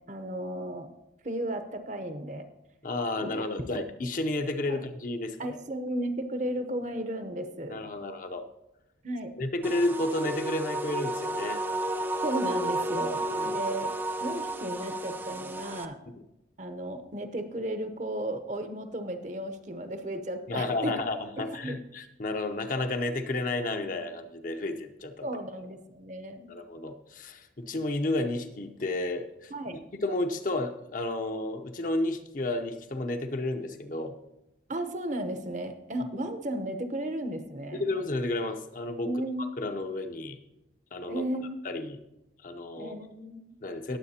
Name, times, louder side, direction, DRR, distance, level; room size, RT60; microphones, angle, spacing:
voice 1, 0.1-0.9 1.2-2.5 3.2-3.4 4.7-4.8 5.4-7.8 9.0-9.3 12.2-13.9 14.2-16.0 16.6-21.0 21.4-21.8 25.2-26.5 29.5-29.8 34.7-37.8 39.0-39.5 41.1-41.6 42.8-43.5, right 1 dB, 40° right, 8 dB, 0.8 m, -34 dB
voice 2, 2.8-5.6 7.7-8.4 9.4-11.6 12.9-13.5 20.5-25.3 26.5-29.5 30.0-34.1 37.7-39.2 39.6-40.4 40.9-41.2 41.6-42.0 42.4-42.9 43.6-44.0, left 2 dB, 45° left, 6 dB, 0.7 m, -32 dB
sound 1, 9.6-15.8, right 1 dB, 10° right, 0.3 m, -32 dB
19.0 x 7.4 x 2.8 m, 0.92 s
head